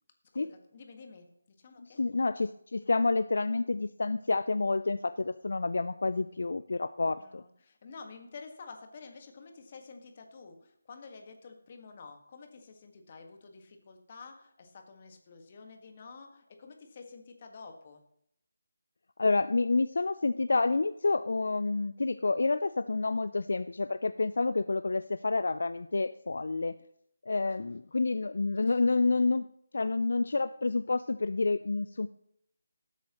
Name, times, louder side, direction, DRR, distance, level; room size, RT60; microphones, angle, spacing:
voice 1, 0.3-1.3 1.6-2.0 7.0-18.0 27.4-27.7 28.7-28.8, left 4 dB, 35° left, 5 dB, 1.7 m, -50 dB
voice 2, 1.8-7.4 19.2-26.8 27.3-29.5 29.7-32.1, left 3 dB, 65° left, 13 dB, 0.4 m, -29 dB
19.0 x 8.3 x 3.1 m, 0.71 s
figure-of-eight pair, 160°, 0 cm